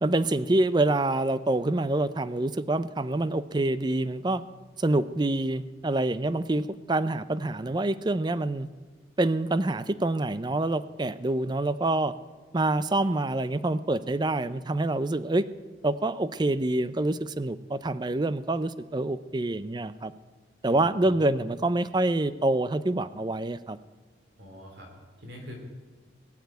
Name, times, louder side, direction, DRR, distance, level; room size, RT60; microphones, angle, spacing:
voice 1, 0.0-4.4 4.8-8.7 9.2-12.1 12.5-15.4 15.8-20.1 20.6-23.8, right 2 dB, 25° right, 15 dB, 0.5 m, -26 dB
voice 2, 20.7-21.2 24.4-24.9 25.2-25.6, left 1 dB, 65° right, 1 dB, 3.1 m, -44 dB
20.0 x 7.4 x 9.2 m, 1.4 s
head